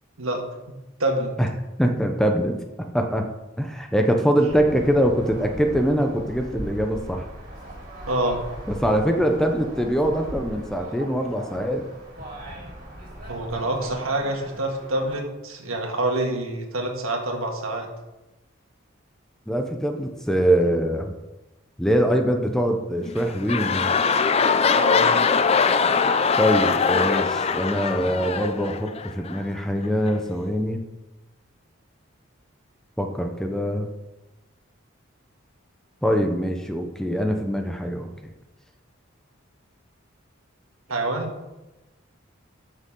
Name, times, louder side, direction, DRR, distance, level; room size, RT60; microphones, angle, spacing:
voice 1, 0.2-1.3 8.1-8.4 13.3-17.9 24.7-25.1 40.9-41.3, right 2 dB, 85° right, 2 dB, 1.8 m, -27 dB
voice 2, 1.8-3.3 3.6-7.3 8.7-11.8 19.5-21.1 21.8-24.0 26.4-30.8 33.0-33.9 36.0-38.3, equal, ahead, 4 dB, 0.7 m, -23 dB
sound 1, 4.5-15.2, right 1 dB, 40° right, 3.0 m, -39 dB
sound 2, 23.0-29.4 30.1-30.2, left 5 dB, 30° left, 0.4 m, -22 dB
13.0 x 6.6 x 3.8 m, 1.0 s
head